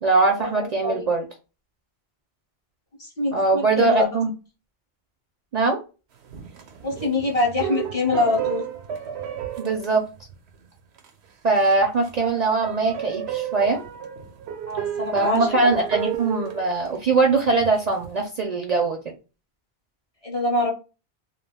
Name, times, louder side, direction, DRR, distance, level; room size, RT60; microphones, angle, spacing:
voice 1, 0.0-1.2 3.3-4.3 5.5-5.8 9.6-10.0 11.4-13.8 15.1-19.1, right 3 dB, 55° right, 3 dB, 0.5 m, -21 dB
voice 2, 3.0-4.0 6.8-8.6 14.7-15.5 20.2-20.7, left 2 dB, 40° left, -1 dB, 0.6 m, -24 dB
sound 1, 6.2-10.6 11.0-11.1 11.5-18.1, right 9 dB, 90° right, 0.9 m, -33 dB
2.4 x 2.2 x 3.4 m, 0.32 s
omnidirectional pair, 1.1 m